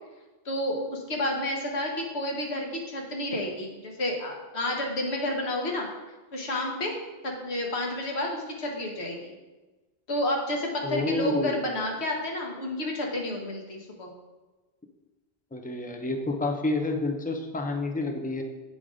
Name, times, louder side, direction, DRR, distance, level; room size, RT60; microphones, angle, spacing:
voice 1, 0.4-5.9 6.3-6.9 7.2-9.3 10.1-14.1, left 1 dB, 90° left, 0 dB, 1.5 m, -30 dB
voice 2, 10.8-11.6 15.5-18.4, left 2 dB, 10° left, 4 dB, 0.4 m, -29 dB
7.8 x 3.9 x 4.8 m, 1.2 s
omnidirectional pair, 1.1 m